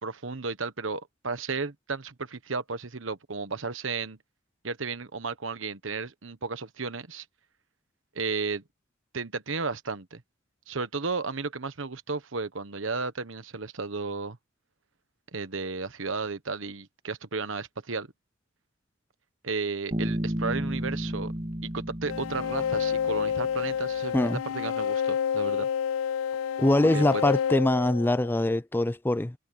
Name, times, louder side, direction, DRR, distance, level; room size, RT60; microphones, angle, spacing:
voice 1, 0.0-4.2 4.6-7.2 8.1-8.6 9.1-10.2 10.7-14.4 15.3-18.1 19.4-21.3 21.6-25.7 26.9-27.2, right 4 dB, 75° right, 1.2 m, -33 dB
Bass guitar, 19.9-23.6, equal, 30° right, 2.0 m, -33 dB
sound 1, 22.1-28.6, left 8 dB, 85° left, 0.3 m, -29 dB
voice 2, 26.6-29.3, left 1 dB, 10° left, 0.4 m, -23 dB
head